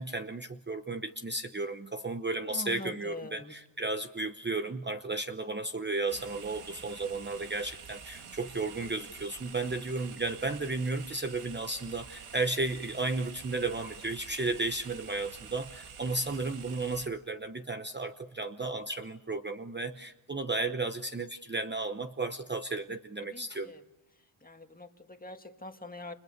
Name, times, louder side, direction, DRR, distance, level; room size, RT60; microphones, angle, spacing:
voice 1, 0.0-23.7, right 3 dB, 20° right, 8 dB, 0.9 m, -34 dB
voice 2, 2.5-3.5 23.3-23.8 24.4-26.1, left 2 dB, 15° left, 6 dB, 1.8 m, -44 dB
sound 1, 6.1-17.1, right 6 dB, 80° right, 2.3 m, -48 dB
29.5 x 28.5 x 6.7 m, 0.98 s
wide cardioid pair, 120°, 49 cm